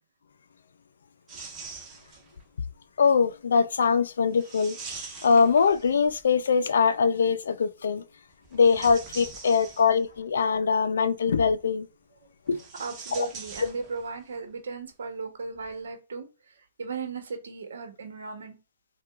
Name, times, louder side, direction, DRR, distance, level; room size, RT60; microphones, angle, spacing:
sound 1, 1.3-2.4 4.4-6.2 8.4-10.2 12.5-14.2 14.5-14.6 15.5-15.7, right 4 dB, 20° right, 1.2 m, -43 dB
voice 1, 3.0-4.8 5.2-8.0 8.5-11.9 12.5-12.6 13.1-13.3, left 5 dB, 80° left, 0.4 m, -22 dB
voice 2, 12.8-18.6, right 4 dB, 80° right, 1.0 m, -36 dB
4.4 x 2.3 x 2.4 m
hypercardioid pair, 130°, 0 cm